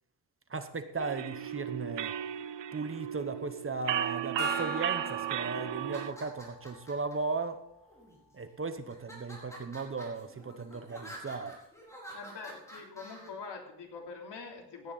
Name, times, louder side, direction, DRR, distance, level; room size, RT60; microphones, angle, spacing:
voice 1, 0.5-2.1 2.7-7.6 8.3-11.6, right 4 dB, 30° right, 9 dB, 0.9 m, -36 dB
sound 1, 1.0-6.1, right 11 dB, 85° right, 0.8 m, -35 dB
Gong, 4.4-7.6, left 1 dB, 50° left, 4.5 m, -42 dB
sound 2, 5.8-7.1 7.9-8.4 8.9-13.3, right 1 dB, 5° left, 4.6 m, -48 dB
voice 2, 12.1-14.9, left 4 dB, 70° left, 1 dB, 3.4 m, -44 dB
17.0 x 10.5 x 4.1 m, 0.75 s
wide cardioid pair, 150°, 42 cm